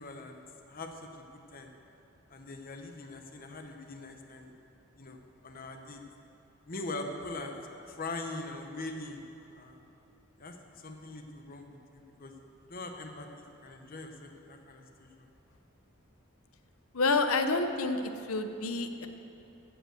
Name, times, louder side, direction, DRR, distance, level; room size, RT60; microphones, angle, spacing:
voice 1, 0.0-1.7 2.3-4.5 5.0-5.2 5.4-6.0 6.7-7.6 7.9-9.8 10.4-12.3 12.6-13.3 13.6-15.3, left 2 dB, 45° left, 4 dB, 1.0 m, -42 dB
voice 2, 16.9-19.1, left 3 dB, 85° left, 8 dB, 0.8 m, -29 dB
14.5 x 5.5 x 7.8 m, 2.9 s
head